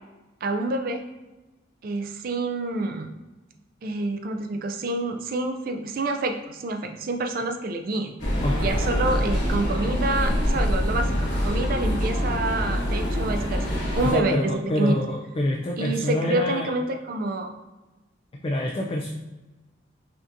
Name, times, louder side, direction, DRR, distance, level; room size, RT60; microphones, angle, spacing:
voice 1, 0.4-1.0 1.8-3.1 3.8-8.2 8.6-14.9 15.8-17.5, right 2 dB, 50° right, 5 dB, 0.4 m, -28 dB
sound 1, 8.2-14.1, equal, 70° left, 1.4 m, -25 dB
voice 2, 8.4-8.8 14.0-16.7 18.4-19.1, left 1 dB, 30° left, 0 dB, 0.3 m, -26 dB
5.7 x 2.7 x 2.5 m, 1.1 s
head